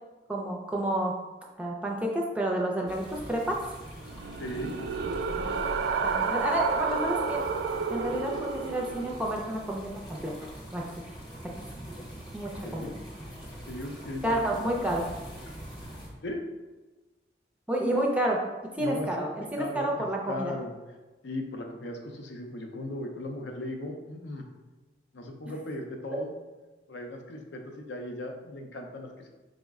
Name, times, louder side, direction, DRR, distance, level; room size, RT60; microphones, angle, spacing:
voice 1, 0.3-1.1 1.6-3.6 5.4-5.5 6.0-7.4 7.9-10.8 12.3-12.9 14.2-15.0 17.7-18.4 18.8-20.5, right 1 dB, 5° right, -1 dB, 0.4 m, -30 dB
sound 1, 2.9-16.1, equal, 25° left, 0.8 m, -44 dB
sound 2, 4.0-9.2, right 5 dB, 75° right, 0.3 m, -30 dB
voice 2, 4.4-4.7 12.6-12.9 13.7-14.7 16.2-16.4 18.8-20.7 21.2-24.5 25.1-26.3 26.9-29.3, left 1 dB, 80° left, 3 dB, 0.6 m, -37 dB
4.8 x 2.1 x 3.5 m, 1.2 s
head